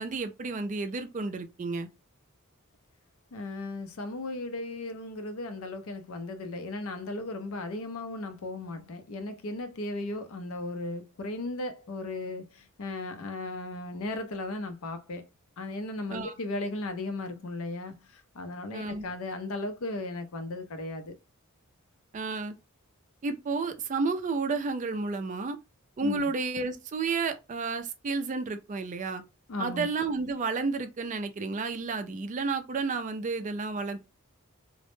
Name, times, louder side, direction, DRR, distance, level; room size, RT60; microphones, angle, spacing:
voice 1, 0.0-1.9 16.1-16.3 18.7-19.1 22.1-22.5 23.2-25.6 26.0-29.2 29.6-34.1, right 4 dB, 35° right, 0.3 m, -31 dB
voice 2, 3.3-15.3 15.6-21.2 26.0-26.3 29.5-29.9, left 2 dB, 70° left, 0.5 m, -36 dB
2.0 x 2.0 x 3.0 m
head